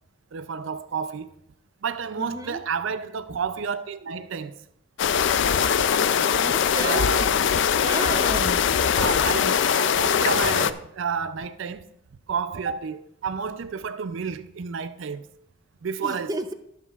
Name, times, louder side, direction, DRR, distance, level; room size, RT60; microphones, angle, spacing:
voice 1, 0.3-1.3 1.8-4.6 6.7-7.4 8.9-11.8 12.3-15.3 15.8-16.3, right 6 dB, 65° right, 0.4 m, -30 dB
voice 2, 2.2-2.6 6.4-7.1 7.8-8.6 16.0-16.5, right 2 dB, 20° right, 0.6 m, -32 dB
sound 1, 5.0-10.7, left 7 dB, 60° left, 0.4 m, -21 dB
18.0 x 7.5 x 2.4 m
head